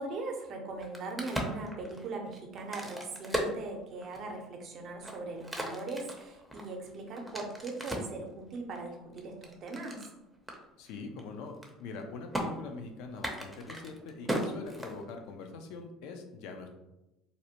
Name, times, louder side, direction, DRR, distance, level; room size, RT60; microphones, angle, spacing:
voice 1, 0.0-10.0, right 3 dB, 50° right, 2 dB, 0.6 m, -40 dB
Crack, 0.7-4.4 4.9-8.2 8.7-10.1 10.5-10.6 10.9-11.2 11.5-12.0 12.3-12.4 13.1-15.3, equal, 5° right, 0.5 m, -37 dB
voice 2, 10.8-16.7, left 4 dB, 75° left, 4 dB, 0.4 m, -43 dB
2.6 x 2.0 x 2.8 m, 0.97 s
supercardioid pair, 90°, 0 cm